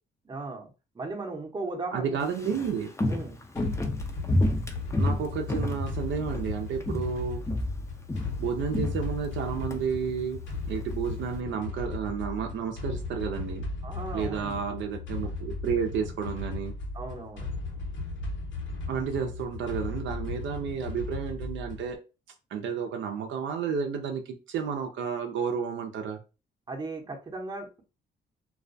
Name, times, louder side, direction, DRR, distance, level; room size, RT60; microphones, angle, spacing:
voice 1, 0.2-2.2 3.1-3.4 13.8-14.6 16.9-17.5 26.7-27.8, right 3 dB, 20° right, 2 dB, 0.7 m, -37 dB
voice 2, 1.9-2.9 5.0-7.4 8.4-10.4 10.7-13.6 14.1-16.7 18.9-22.0 22.5-24.2 24.5-26.2, right 6 dB, 70° right, 4 dB, 0.5 m, -31 dB
Walk footsteps, 2.2-6.5 6.8-7.2 7.5-9.8 10.1-10.2, left 1 dB, 15° left, 0.4 m, -29 dB
sound 1, 3.6-22.0, left 3 dB, 75° left, 1.0 m, -36 dB
2.3 x 2.2 x 2.5 m, 0.30 s
cardioid pair, 90°, 20 cm